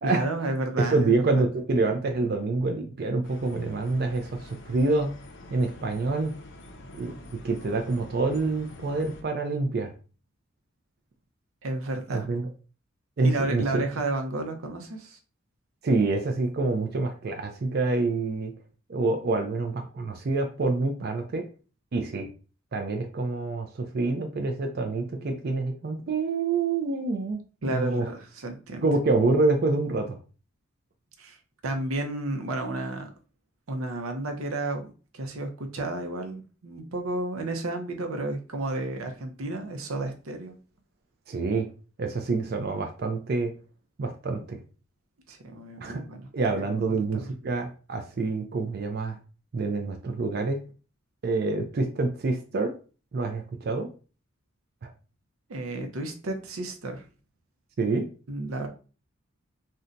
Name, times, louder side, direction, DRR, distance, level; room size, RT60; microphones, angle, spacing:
voice 1, 0.0-1.3 11.6-12.3 13.2-15.2 27.6-28.9 31.2-33.1 33.7-34.9 35.1-40.6 45.3-46.3 46.6-47.3 55.5-57.0 58.3-58.7, right 2 dB, 90° right, 5 dB, 0.6 m, -32 dB
voice 2, 0.9-5.1 5.5-6.3 7.0-7.1 7.4-9.9 12.1-12.5 13.2-13.6 15.8-18.5 18.9-21.4 21.9-22.3 22.7-28.1 28.8-30.2 41.3-41.7 42.0-43.5 44.0-44.6 45.8-45.9 46.3-49.2 49.5-50.6 51.2-52.7 53.1-53.9 57.8-58.0, right 3 dB, 50° right, 4 dB, 0.4 m, -27 dB
sound 1, 3.2-9.2, left 1 dB, 55° left, 0.5 m, -46 dB
2.6 x 2.2 x 3.8 m, 0.35 s
head